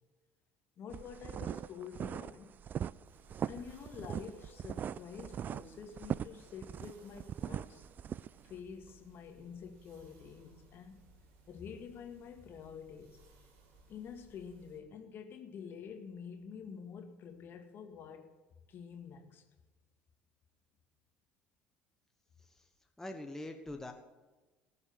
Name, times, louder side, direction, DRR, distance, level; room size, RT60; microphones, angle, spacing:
voice 1, 0.8-2.5 3.4-7.8 8.4-11.0 11.5-13.2 13.9-18.3 18.7-19.4, left 7 dB, 45° left, 5 dB, 2.1 m, -48 dB
sound 1, 0.9-8.5, right 9 dB, 35° right, 0.3 m, -40 dB
sound 2, 3.0-14.8, right 2 dB, 55° right, 2.6 m, -63 dB
voice 2, 23.0-23.9, left 1 dB, 10° left, 4 dB, 1.2 m, -44 dB
19.5 x 7.2 x 6.8 m, 1.2 s
figure-of-eight pair, 60°, 5 cm